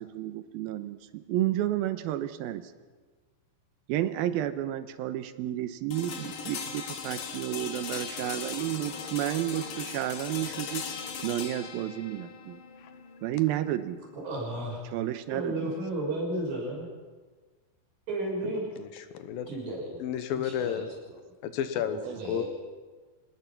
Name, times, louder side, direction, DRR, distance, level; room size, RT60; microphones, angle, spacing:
voice 1, 0.0-2.6 3.9-10.8 11.2-12.6 13.2-14.0 14.9-15.7 18.4-18.5 22.0-22.2, right 13 dB, 90° right, 11 dB, 2.8 m, -31 dB
sound 1, 5.9-15.8, left 6 dB, 50° left, 2.3 m, -39 dB
voice 2, 14.1-14.8 15.3-16.9 18.1-18.7 19.5-20.0 20.4-20.8 21.8-22.5, right 1 dB, 70° right, -1 dB, 7.7 m, -33 dB
voice 3, 18.8-19.5 20.0-21.0 21.4-22.4, left 9 dB, 75° left, 10 dB, 2.8 m, -32 dB
25.5 x 19.5 x 6.0 m, 1.4 s
omnidirectional pair, 4.2 m